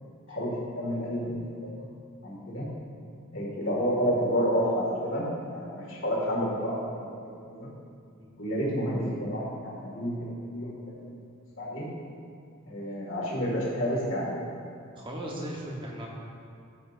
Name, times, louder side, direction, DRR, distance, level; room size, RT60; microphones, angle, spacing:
voice 1, 0.3-1.9 2.2-2.7 3.3-7.7 8.4-11.0 11.6-11.9 12.7-14.3, equal, 65° left, -5 dB, 2.2 m, -30 dB
voice 2, 14.9-16.1, right 1 dB, 25° right, -3 dB, 1.3 m, -37 dB
12.5 x 7.0 x 2.7 m, 2.4 s
head